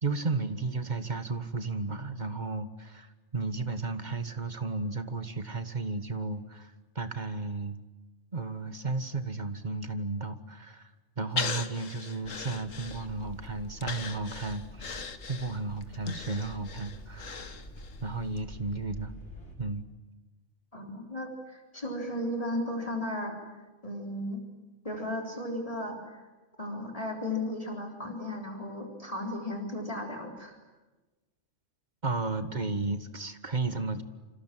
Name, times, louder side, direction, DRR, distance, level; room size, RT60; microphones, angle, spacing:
voice 1, 0.0-7.8 8.3-10.9 11.2-14.9 15.3-17.5 18.0-19.1 19.6-19.9 32.0-34.0, right 3 dB, 35° right, 10 dB, 1.7 m, -33 dB
Breathing, 11.4-13.3 13.8-18.0 18.4-18.5, left 6 dB, 85° left, 1.8 m, -38 dB
sound 1, 12.2-19.6, left 1 dB, 60° left, 6.9 m, -47 dB
voice 2, 20.7-23.4 23.8-24.4 24.8-26.2 26.6-30.6, left 1 dB, 30° left, 1 dB, 3.9 m, -35 dB
29.0 x 26.5 x 7.6 m, 1.2 s
omnidirectional pair, 1.3 m